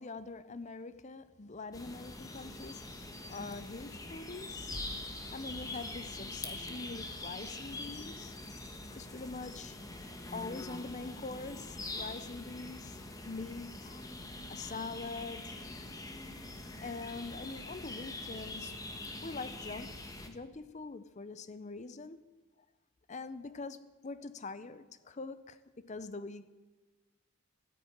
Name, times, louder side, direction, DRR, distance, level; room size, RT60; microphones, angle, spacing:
voice 1, 0.0-4.8 5.3-8.4 8.9-9.8 10.3-13.0 13.2-14.1 14.5-15.6 16.8-18.8 19.2-20.0 20.3-22.2 23.1-26.5, left 3 dB, 35° left, 0.6 m, -44 dB
sound 1, 1.7-20.3, left 2 dB, 15° left, 1.1 m, -44 dB
Doctor Strange Magic Circle Shield Sound Effect, 4.5-8.9, right 1 dB, 80° right, 1.5 m, -51 dB
13.5 x 10.0 x 8.7 m
head